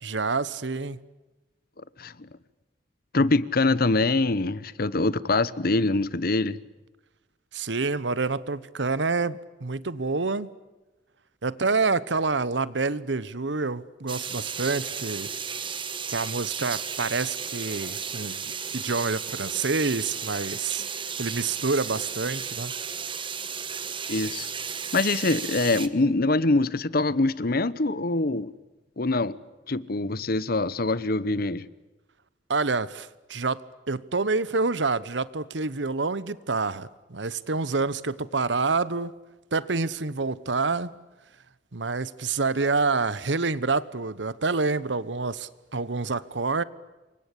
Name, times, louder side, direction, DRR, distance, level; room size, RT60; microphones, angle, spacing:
voice 1, 0.0-1.0 7.5-10.5 11.4-15.3 16.1-20.9 21.2-22.7 32.5-39.1 39.5-40.9 41.7-46.6, right 4 dB, 80° right, 1.1 m, -27 dB
voice 2, 2.0-2.3 3.1-6.6 24.1-24.5 24.9-28.5 29.0-29.4 29.7-31.6, left 2 dB, 55° left, 1.0 m, -24 dB
sound 1, 14.1-25.9, right 6 dB, 30° right, 1.5 m, -34 dB
28.5 x 24.5 x 8.4 m
head